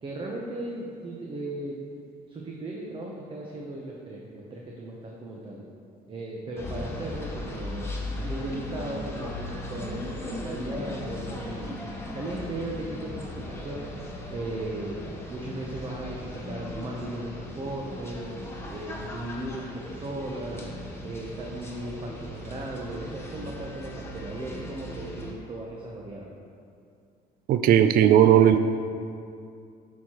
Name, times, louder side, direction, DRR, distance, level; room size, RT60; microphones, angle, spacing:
voice 1, 0.0-1.8 2.3-5.7 6.1-7.9 8.2-13.9 14.3-15.0 15.3-18.3 18.7-20.7 21.0-26.3, right 1 dB, 30° right, -2 dB, 0.8 m, -36 dB
sound 1, 6.6-25.3, left 1 dB, 15° left, 1.1 m, -38 dB
voice 2, 27.5-28.6, right 10 dB, 60° right, 10 dB, 0.4 m, -17 dB
8.2 x 6.4 x 2.9 m, 2.4 s
cardioid pair, 110°, 17 cm